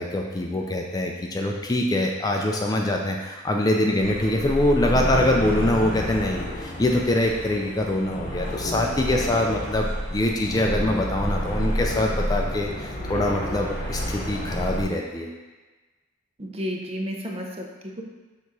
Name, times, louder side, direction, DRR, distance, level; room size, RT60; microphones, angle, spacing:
voice 1, 0.0-15.3, left 1 dB, 20° left, 1 dB, 0.4 m, -24 dB
sound 1, 4.0-14.8, equal, 35° left, 0.9 m, -29 dB
voice 2, 16.4-18.0, equal, 30° right, 1 dB, 0.6 m, -32 dB
6.8 x 3.0 x 4.7 m, 1.3 s
head